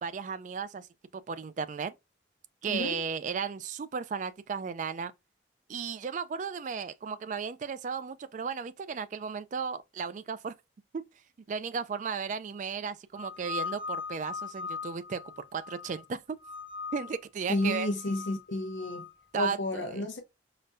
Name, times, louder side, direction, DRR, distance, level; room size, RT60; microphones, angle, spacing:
voice 1, 0.0-0.9 1.1-1.9 2.6-5.1 5.7-10.5 10.9-11.0 11.5-16.4 16.9-17.9 19.3-20.1, right 6 dB, 40° right, 0.3 m, -35 dB
sound 1, 13.1-16.0 16.4-17.2 17.5-19.1, left 5 dB, 25° right, 0.9 m, -40 dB
voice 2, 17.5-19.1 19.3-20.2, left 2 dB, 85° left, 0.7 m, -31 dB
4.9 x 2.2 x 2.6 m
head